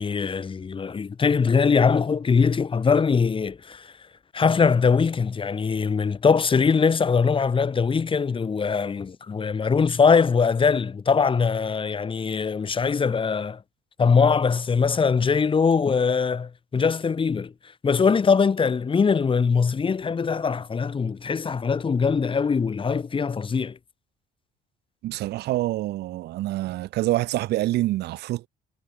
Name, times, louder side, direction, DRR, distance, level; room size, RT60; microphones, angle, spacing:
voice 1, 0.0-3.9 4.3-13.6 14.0-17.5 17.8-23.8, left 5 dB, 30° left, 4.7 m, -22 dB
voice 2, 25.0-28.5, right 16 dB, 80° right, 2.7 m, -26 dB
cardioid pair, 110°, 17 cm